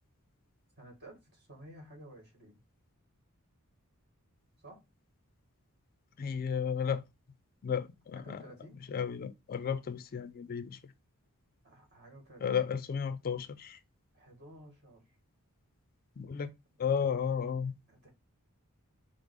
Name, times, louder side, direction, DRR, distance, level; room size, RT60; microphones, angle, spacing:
voice 1, 0.8-2.6 4.6-4.8 8.1-8.8 11.6-12.6 14.1-15.0 17.0-17.6 17.9-18.1, right 1 dB, 50° right, 1.8 m, -53 dB
voice 2, 6.2-7.0 7.6-8.4 8.9-10.8 12.4-13.8 16.2-16.5 16.8-17.7, left 7 dB, 40° left, 0.4 m, -33 dB
5.2 x 2.0 x 4.6 m
head